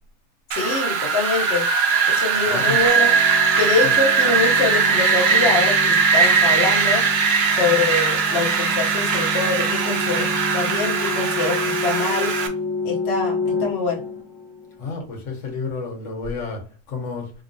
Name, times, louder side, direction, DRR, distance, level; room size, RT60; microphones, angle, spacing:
voice 1, 0.5-1.6 2.1-3.2 3.6-7.0 7.5-12.3 12.8-14.0, left 3 dB, 65° left, 1.1 m, -24 dB
Wind, 0.5-12.5, right 5 dB, 65° right, 0.8 m, -20 dB
sound 1, 2.2-14.9, left 3 dB, 20° left, 0.6 m, -30 dB
voice 2, 2.5-2.8 3.8-4.0 14.8-17.3, left 4 dB, 90° left, 1.3 m, -31 dB
3.7 x 2.9 x 2.6 m
omnidirectional pair, 1.3 m